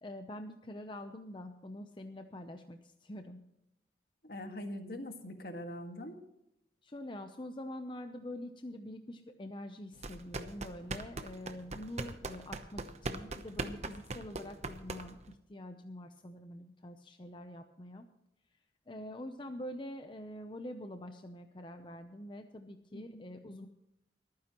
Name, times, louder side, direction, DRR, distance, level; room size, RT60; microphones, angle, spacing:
voice 1, 0.0-3.4 6.8-18.0 18.9-23.7, left 1 dB, 30° left, 6 dB, 0.7 m, -45 dB
voice 2, 4.2-6.2 22.9-23.2, left 1 dB, 60° left, 5 dB, 1.8 m, -43 dB
sound 1, 10.0-15.3, right 3 dB, 40° right, 0.9 m, -40 dB
23.5 x 9.6 x 3.0 m, 0.85 s
head